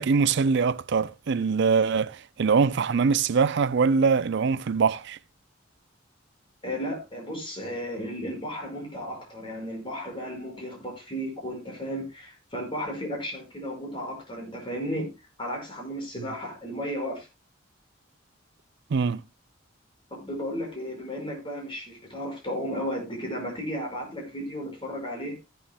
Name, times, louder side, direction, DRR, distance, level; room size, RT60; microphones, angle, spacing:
voice 1, 0.0-5.2 18.9-19.2, right 5 dB, 60° right, 0.5 m, -23 dB
voice 2, 6.6-15.1 15.4-17.3 20.1-25.4, equal, 25° left, 5.5 m, -34 dB
15.0 x 11.5 x 2.2 m
head